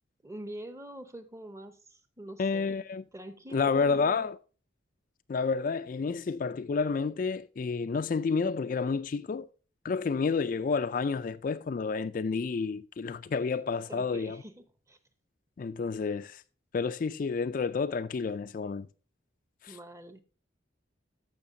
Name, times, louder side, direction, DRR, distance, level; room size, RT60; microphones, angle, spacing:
voice 1, 0.2-2.9 3.1-4.3 13.9-15.0 19.7-20.2, right 1 dB, 15° right, 0.8 m, -45 dB
voice 2, 2.4-3.0 3.5-4.4 5.3-9.5 9.8-14.4 15.6-16.4 16.7-18.9 19.6-19.8, left 5 dB, 45° left, 0.3 m, -30 dB
14.0 x 5.8 x 2.7 m
head